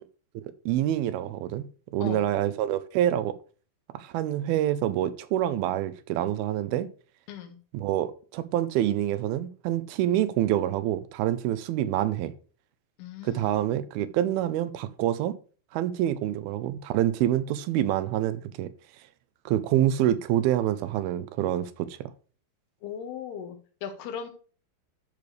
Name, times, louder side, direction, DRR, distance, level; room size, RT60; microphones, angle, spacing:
voice 1, 0.7-1.6 1.9-3.4 3.9-6.9 7.7-12.3 13.2-15.3 15.7-18.7 19.5-22.1, right 12 dB, 85° right, 2.4 m, -26 dB
voice 2, 13.0-13.6 22.8-24.3, left 8 dB, 85° left, 3.4 m, -38 dB
10.5 x 6.7 x 3.3 m
omnidirectional pair, 4.5 m